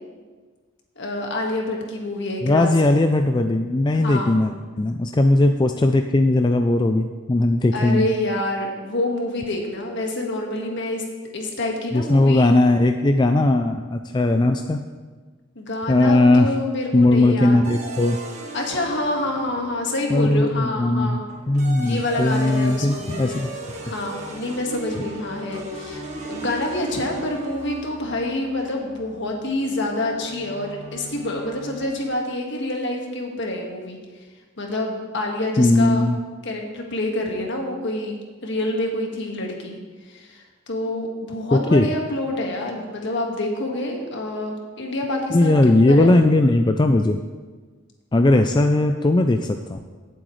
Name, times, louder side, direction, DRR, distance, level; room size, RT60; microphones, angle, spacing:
voice 1, 0.9-2.9 4.0-4.4 7.7-11.0 11.3-12.5 15.5-17.7 18.5-21.2 21.8-23.4 23.8-34.0 34.6-36.1 36.4-38.2 38.4-39.8 40.0-46.1, left 1 dB, 60° left, 1 dB, 1.7 m, -27 dB
voice 2, 2.4-8.1 11.9-14.8 15.9-16.5 16.9-18.2 20.1-21.2 21.5-23.5 35.6-36.2 41.5-41.9 45.3-47.2 48.1-49.8, left 2 dB, 20° left, 6 dB, 0.4 m, -18 dB
sound 1, 17.6-20.2 21.3-32.4, right 2 dB, 35° right, 1.4 m, -38 dB
17.0 x 7.8 x 3.2 m, 1.4 s
head